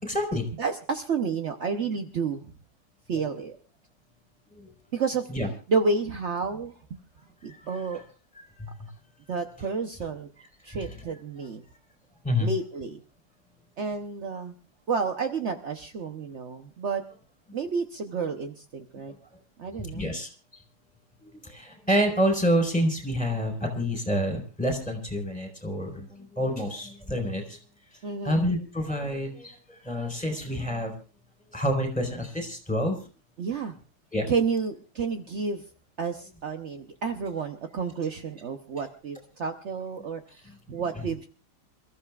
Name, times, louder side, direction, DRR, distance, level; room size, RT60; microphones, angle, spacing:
voice 1, 0.0-0.4 4.5-4.7 5.3-5.5 7.4-7.6 8.6-8.7 10.6-10.9 12.2-12.5 19.9-20.3 21.2-27.6 28.2-30.9 31.5-33.0 34.1-34.3, equal, 5° left, 3 dB, 4.2 m, -28 dB
voice 2, 0.6-2.5 3.1-3.5 4.9-5.3 5.7-7.0 7.4-8.0 9.3-10.3 10.6-11.6 12.4-13.0 13.8-14.5 14.9-17.0 17.5-19.1 19.6-20.1 28.0-28.5 33.4-33.7 34.3-35.6 36.0-41.2, right 5 dB, 60° right, 5 dB, 0.7 m, -30 dB
28.0 x 14.5 x 2.4 m, 0.36 s
omnidirectional pair, 2.4 m